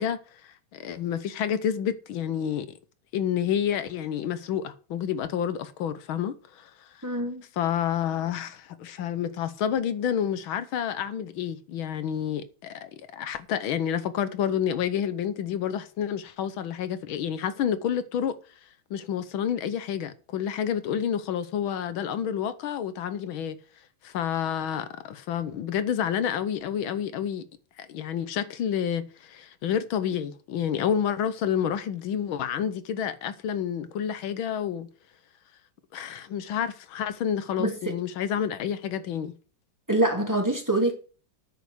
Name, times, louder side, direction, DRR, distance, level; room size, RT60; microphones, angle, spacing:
voice 1, 0.0-2.7 3.1-6.9 7.6-18.4 18.9-23.6 24.0-27.5 27.8-34.9 35.9-39.3, left 9 dB, 80° left, 1.7 m, -29 dB
voice 2, 7.0-7.4 37.6-37.9 39.9-40.9, right 1 dB, 10° right, 2.5 m, -25 dB
9.5 x 7.3 x 7.8 m
omnidirectional pair, 2.2 m